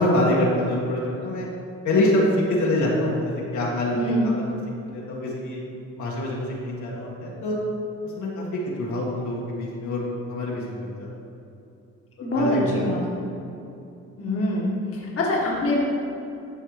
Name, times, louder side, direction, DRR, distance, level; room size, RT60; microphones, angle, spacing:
voice 1, 0.0-1.5 1.8-4.6 4.8-5.6 6.0-7.6 8.0-11.1 12.3-12.7, left 1 dB, 75° left, -5 dB, 1.8 m, -25 dB
voice 2, 3.9-4.3 12.2-13.0 14.2-14.7 14.9-15.8, left 1 dB, 50° left, -4 dB, 1.7 m, -24 dB
12.0 x 4.5 x 3.2 m, 2.7 s
cardioid pair, 90°, 30 cm